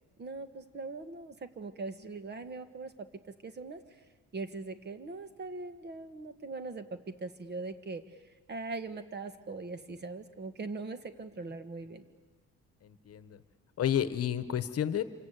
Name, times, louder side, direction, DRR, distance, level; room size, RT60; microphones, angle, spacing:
voice 1, 0.2-4.0 4.3-12.1, right 3 dB, 35° right, 11 dB, 1.5 m, -41 dB
voice 2, 12.8-13.4 13.8-15.0, left 10 dB, 50° left, 13 dB, 1.2 m, -31 dB
27.0 x 25.0 x 8.3 m, 1.4 s
cardioid pair, 135°, 31 cm